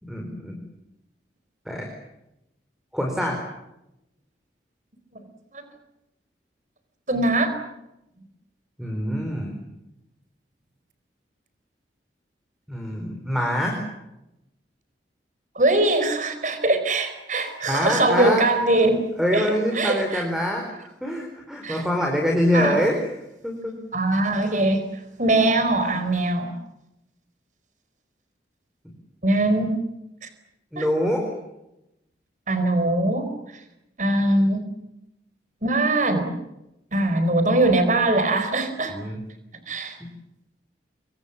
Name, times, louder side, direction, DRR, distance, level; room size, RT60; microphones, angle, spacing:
voice 1, 0.0-0.5 1.7-1.8 2.9-3.4 8.8-9.5 12.7-13.8 17.6-18.4 19.2-20.7 21.0-23.0 23.4-23.7 28.8-28.9 30.7-31.3 38.9-39.2, equal, ahead, 2 dB, 4.5 m, -24 dB
voice 2, 7.1-7.5 15.5-19.0 19.3-19.5 19.7-20.2 21.6-21.8 22.5-22.8 23.9-26.5 29.2-29.8 30.2-30.3 30.8-30.9 32.5-33.2 34.0-34.6 35.6-36.3 36.9-39.0 39.7-40.0, right 2 dB, 45° right, 9 dB, 4.4 m, -22 dB
27.5 x 24.5 x 7.3 m, 0.88 s
head